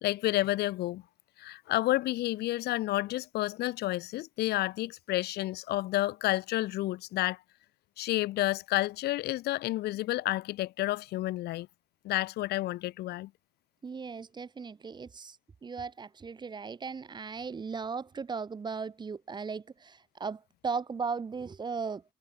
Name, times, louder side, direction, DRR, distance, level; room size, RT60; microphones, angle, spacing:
voice 1, 0.0-1.0 1.4-7.4 8.0-11.7 12.0-13.3, left 16 dB, 75° left, 1.0 m, -30 dB
voice 2, 13.8-15.4 15.6-22.0, right 5 dB, 25° right, 1.0 m, -37 dB
cardioid pair, 110°, 17 cm